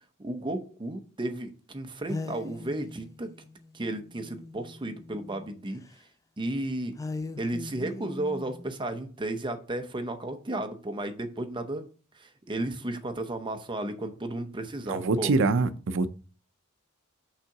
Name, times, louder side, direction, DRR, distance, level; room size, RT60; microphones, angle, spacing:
voice 1, 0.2-3.3 3.7-6.1 6.4-6.9 7.4-11.8 12.1-15.3, right 1 dB, 20° right, 7 dB, 0.7 m, -33 dB
sound 1, 2.1-5.5 5.8-5.9 7.0-8.7, left 3 dB, 15° left, 0.4 m, -40 dB
voice 2, 14.9-16.1, right 3 dB, 60° right, 12 dB, 0.5 m, -24 dB
5.7 x 3.7 x 5.8 m, 0.39 s
head